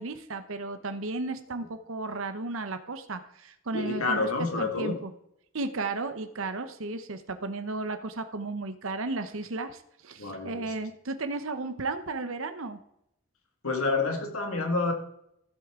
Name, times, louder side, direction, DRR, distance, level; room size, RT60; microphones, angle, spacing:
voice 1, 0.0-4.3 4.6-5.1 5.5-12.8, right 3 dB, 70° right, 9 dB, 0.9 m, -34 dB
voice 2, 3.7-5.0 10.2-10.7 13.6-14.9, left 3 dB, 85° left, 4 dB, 2.1 m, -28 dB
15.5 x 8.0 x 3.7 m, 0.75 s
head